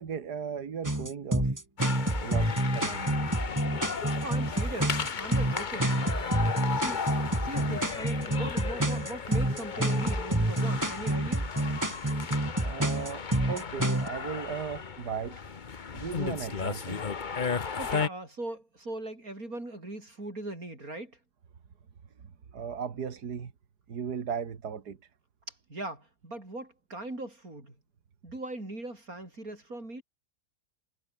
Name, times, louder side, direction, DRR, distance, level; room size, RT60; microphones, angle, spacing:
voice 1, 0.0-1.6 2.2-3.3 12.6-15.4 15.9-17.0 22.5-23.5 23.9-25.0, right 7 dB, 80° right, 2.4 m, -36 dB
sound 1, 0.8-14.1, right 1 dB, 10° right, 1.9 m, -28 dB
sound 2, 1.8-18.1, left 5 dB, 35° left, 1.0 m, -35 dB
voice 2, 3.9-6.4 6.7-11.5 17.8-21.2 25.5-27.8 28.2-30.0, right 2 dB, 60° right, 8.0 m, -40 dB
omnidirectional pair, 1.7 m